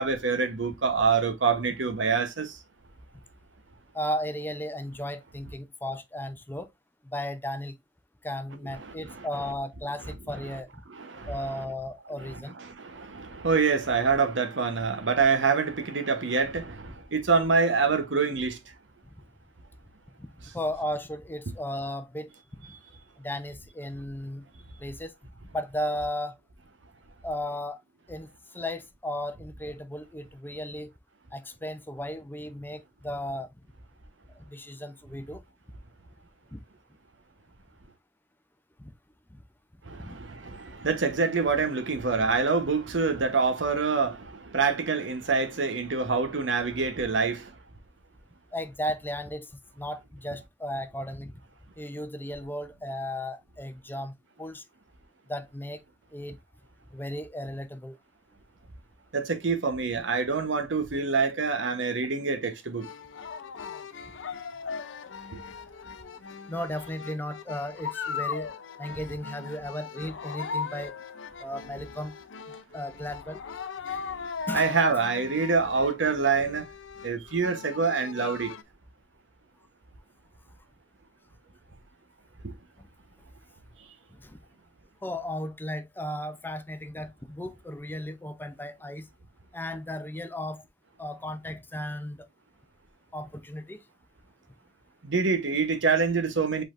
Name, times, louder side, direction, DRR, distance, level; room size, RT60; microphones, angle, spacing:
voice 1, 0.0-2.6 8.8-9.3 10.9-11.6 12.2-18.6 39.9-47.5 59.1-62.9 74.5-76.6 77.0-78.5 82.4-82.5 95.0-96.6, right 4 dB, 85° right, 1.0 m, -26 dB
voice 2, 3.9-6.7 7.0-7.8 8.2-10.8 11.3-12.6 20.2-22.3 22.6-22.7 23.2-24.5 24.8-25.1 25.5-26.4 27.2-27.8 28.1-30.9 31.3-33.5 34.4-35.4 36.5-36.6 38.8-38.9 39.3-39.4 40.0-40.2 48.5-49.5 49.8-51.3 51.8-54.6 55.3-55.8 56.1-56.4 56.9-58.0 66.5-68.5 68.8-70.9 71.4-72.1 72.7-73.4 74.5-74.7 84.2-84.4 85.0-89.1 89.5-90.6 91.0-92.3 93.1-93.8, left 1 dB, 10° left, 0.5 m, -35 dB
sound 1, 62.8-78.6, left 6 dB, 85° left, 0.5 m, -38 dB
5.1 x 3.9 x 2.5 m
head